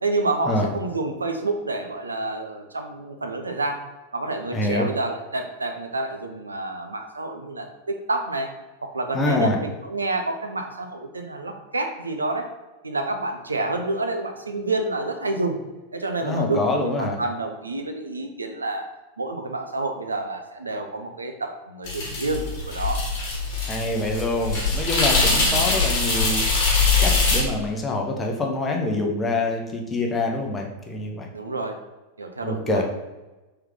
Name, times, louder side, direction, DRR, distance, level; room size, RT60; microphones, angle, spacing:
voice 1, 0.0-3.8 4.1-8.5 8.8-12.5 12.8-15.6 15.9-18.9 19.2-23.0 25.3-25.7 31.3-31.8 32.2-32.8, right 2 dB, 80° right, 5 dB, 0.4 m, -28 dB
voice 2, 4.5-4.9 9.1-9.6 16.2-17.2 23.7-26.4 27.0-31.3 32.4-32.8, left 2 dB, 20° left, 1 dB, 0.7 m, -25 dB
sound 1, 21.9-27.4, left 3 dB, 45° left, 1.2 m, -22 dB
3.3 x 3.1 x 3.6 m, 1.1 s
figure-of-eight pair, 90°, 0 cm